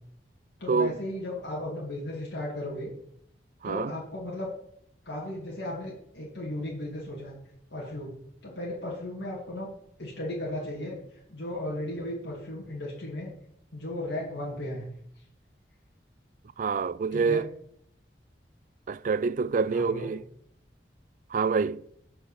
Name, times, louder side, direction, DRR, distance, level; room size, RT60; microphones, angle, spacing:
voice 1, 0.6-2.9 3.6-4.5 5.0-7.3 7.7-8.1 8.4-9.7 10.0-13.3 13.7-14.8 17.1-17.5 19.7-20.1, left 1 dB, 80° left, 2.3 m, -35 dB
voice 2, 16.6-17.5 18.9-20.2 21.3-21.8, right 5 dB, 45° right, 0.3 m, -26 dB
8.2 x 6.1 x 7.1 m
head